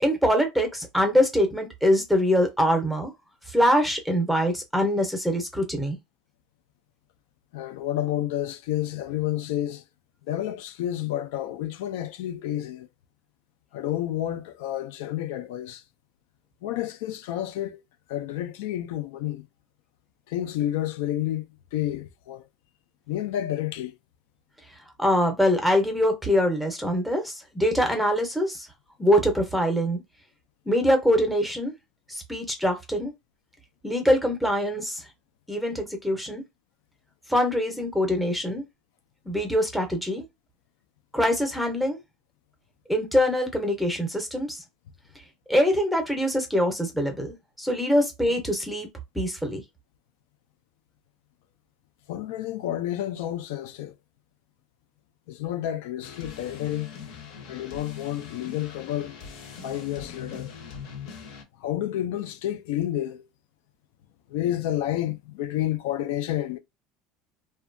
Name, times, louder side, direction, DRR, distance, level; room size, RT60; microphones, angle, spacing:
voice 1, 0.0-3.1 3.5-6.0 25.0-28.7 29.0-30.0 30.7-31.7 32.1-33.1 33.8-35.0 35.5-36.4 37.3-38.6 39.3-40.2 41.1-42.0 42.9-44.6 45.5-48.9 49.1-49.6, equal, ahead, 0.6 m, -24 dB
voice 2, 7.5-9.8 10.3-12.9 13.7-15.8 16.6-17.8 18.1-19.5 20.3-21.4 21.7-22.5 23.1-23.9 52.1-54.0 55.3-56.9 57.5-59.2 59.6-60.5 61.6-63.3 64.3-66.6, left 12 dB, 80° left, 0.4 m, -30 dB
sound 1, 56.0-61.4, left 6 dB, 60° left, 0.7 m, -42 dB
2.7 x 2.2 x 2.5 m
cardioid pair, 170°, 0 cm